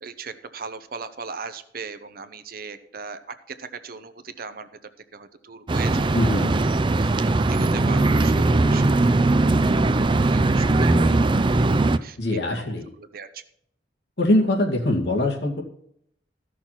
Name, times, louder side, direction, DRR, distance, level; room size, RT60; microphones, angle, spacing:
voice 1, 0.0-4.7 5.1-6.6 7.0-7.1 7.4-9.1 10.0-11.3 11.6-11.7 12.0-13.4, right 5 dB, 55° right, 11 dB, 0.9 m, -38 dB
sound 1, 5.7-12.0, right 2 dB, 30° right, 0.5 m, -20 dB
voice 2, 6.1-6.5 9.8-9.9 12.2-12.9 14.2-15.6, left 1 dB, 70° left, 0 dB, 2.2 m, -22 dB
14.0 x 6.4 x 5.8 m, 0.71 s
head